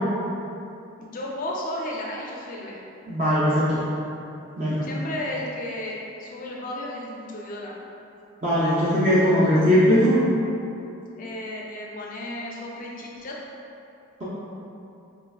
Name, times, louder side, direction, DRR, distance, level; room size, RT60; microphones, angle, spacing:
voice 1, 1.0-2.8 4.8-7.8 11.2-13.3, left 1 dB, 35° left, -3 dB, 0.4 m, -33 dB
voice 2, 3.1-3.8 4.6-4.8 8.4-10.2, equal, 30° right, -9 dB, 0.5 m, -19 dB
3.3 x 3.3 x 2.3 m, 2.8 s
head